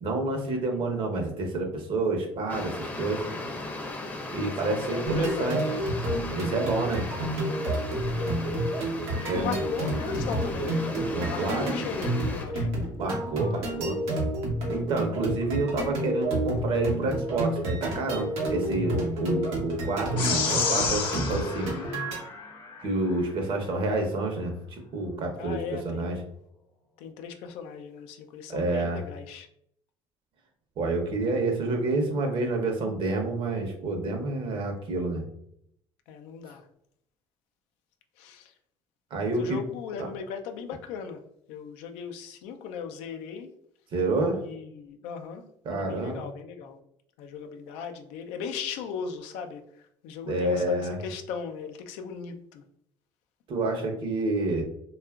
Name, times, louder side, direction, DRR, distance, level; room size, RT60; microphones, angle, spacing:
voice 1, 0.0-3.2 4.3-5.6 6.3-7.1 9.1-9.5 11.1-11.7 13.0-14.0 14.7-21.7 22.8-25.6 25.8-26.2 28.5-29.0 30.8-35.2 39.1-39.6 43.9-44.4 45.6-46.2 50.3-51.0 53.5-54.6, right 2 dB, 60° right, 3 dB, 0.7 m, -28 dB
sound 1, 2.5-12.5, left 2 dB, 15° left, 0.6 m, -37 dB
voice 2, 4.4-5.9 7.9-8.8 9.1-10.8 11.3-12.7 25.4-26.1 27.0-29.5 36.1-36.7 38.2-38.5 39.1-41.2 41.5-43.5 44.4-46.8 47.2-52.6, left 6 dB, 90° left, 5 dB, 0.4 m, -38 dB
sound 2, 5.1-22.2, right 1 dB, 90° right, 0.8 m, -30 dB
sound 3, 20.2-22.8, left 5 dB, 55° left, 0.8 m, -30 dB
2.8 x 2.4 x 2.3 m, 0.71 s
supercardioid pair, 90°, 10 cm